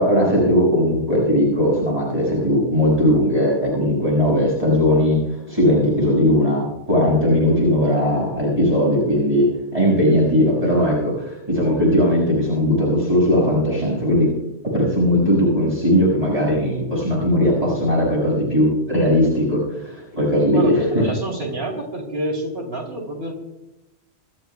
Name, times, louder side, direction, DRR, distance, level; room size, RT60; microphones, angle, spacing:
voice 1, 0.0-5.2 5.5-14.3 14.7-21.0, equal, 35° right, -5 dB, 6.2 m, -18 dB
voice 2, 20.5-23.3, right 1 dB, 55° right, 0 dB, 3.4 m, -27 dB
27.0 x 12.5 x 2.3 m, 0.96 s
omnidirectional pair, 1.2 m